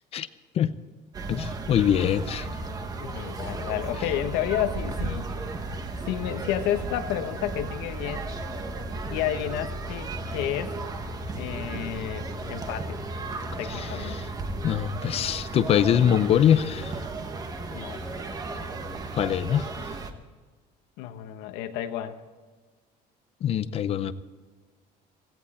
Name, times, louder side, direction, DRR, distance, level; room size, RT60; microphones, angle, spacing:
sound 1, 1.1-20.1, right 2 dB, 20° right, 1.1 m, -34 dB
voice 1, 1.3-2.5 13.7-14.3 14.6-17.0 19.1-19.7 23.4-24.1, left 9 dB, 35° left, 14 dB, 0.6 m, -23 dB
voice 2, 3.0-5.3 6.1-8.3 9.1-10.7 11.4-13.0 13.6-14.3 17.7-18.0 21.0-22.1, left 11 dB, 85° left, 7 dB, 1.3 m, -31 dB
17.0 x 17.0 x 4.3 m, 1.4 s
cardioid pair, 175°, 17 cm